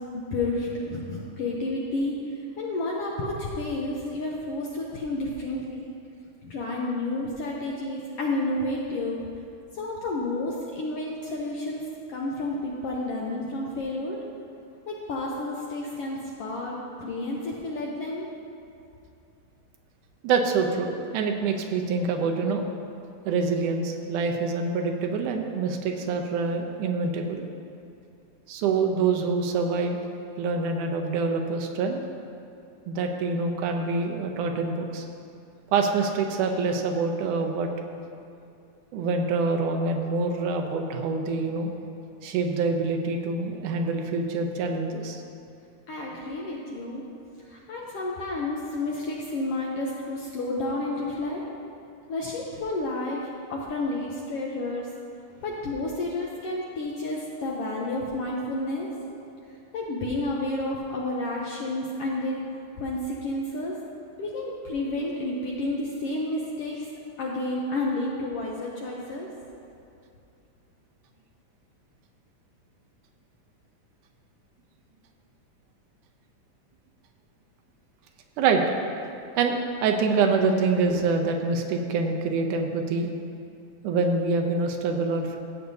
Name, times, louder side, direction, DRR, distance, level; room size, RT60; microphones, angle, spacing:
voice 1, 0.1-5.9 6.4-9.2 9.7-14.2 14.9-18.3 45.9-47.0 47.4-51.4 52.1-53.2 53.5-54.9 55.4-58.9 59.7-62.4 62.8-63.8 64.2-66.9 67.2-69.3, left 2 dB, 75° left, -3 dB, 1.4 m, -30 dB
voice 2, 20.2-22.6 23.3-27.5 28.5-30.1 30.4-32.0 32.9-35.1 35.7-37.7 38.9-41.7 42.2-45.2 78.4-78.6 79.4-83.1 83.8-85.4, right 4 dB, 85° right, 3 dB, 2.2 m, -26 dB
14.5 x 7.9 x 2.7 m, 2.7 s
omnidirectional pair, 3.5 m